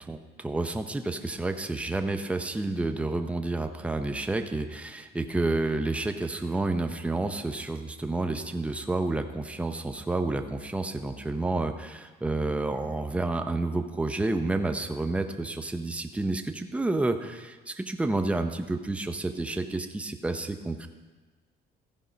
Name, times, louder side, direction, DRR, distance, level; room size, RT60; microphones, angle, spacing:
voice 1, 0.1-20.9, right 2 dB, 5° right, 7 dB, 0.6 m, -30 dB
15.0 x 5.4 x 5.0 m, 1.3 s
cardioid pair, 110°, 17 cm